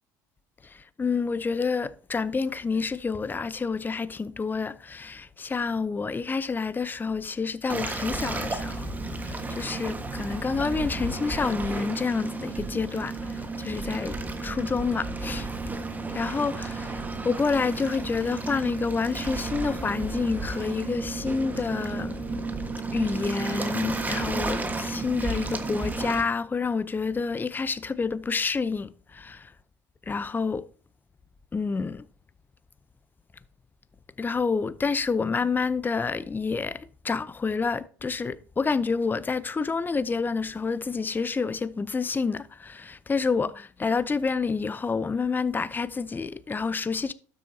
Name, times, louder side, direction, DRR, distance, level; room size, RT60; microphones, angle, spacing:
voice 1, 0.6-8.9 9.2-15.5 16.1-22.2 22.9-29.5 30.1-30.6 31.5-32.1 34.2-47.1, left 4 dB, 20° left, 0.7 m, -28 dB
Waves surf, 7.7-26.2, right 3 dB, 20° right, 1.5 m, -32 dB
12.5 x 7.8 x 2.8 m
hypercardioid pair, 70°, 9 cm